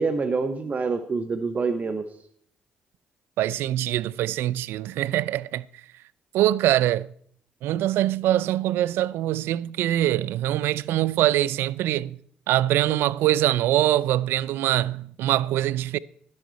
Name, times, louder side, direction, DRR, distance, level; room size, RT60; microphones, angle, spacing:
voice 1, 0.0-2.0, right 4 dB, 40° right, 1.0 m, -26 dB
voice 2, 3.4-5.6 6.3-7.1 7.6-12.2 12.5-16.0, right 13 dB, 75° right, 0.3 m, -23 dB
11.5 x 11.0 x 4.1 m
supercardioid pair, 55°, 4 cm